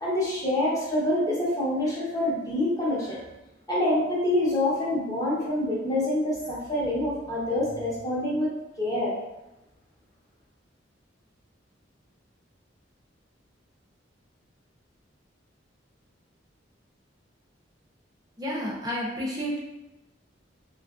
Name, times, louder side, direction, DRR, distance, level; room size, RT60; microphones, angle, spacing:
voice 1, 0.0-3.2 3.7-8.5 8.8-9.1, left 1 dB, 20° left, -7 dB, 0.8 m, -26 dB
voice 2, 18.4-19.6, equal, 20° right, -5 dB, 0.7 m, -30 dB
3.0 x 2.4 x 2.3 m, 0.97 s
head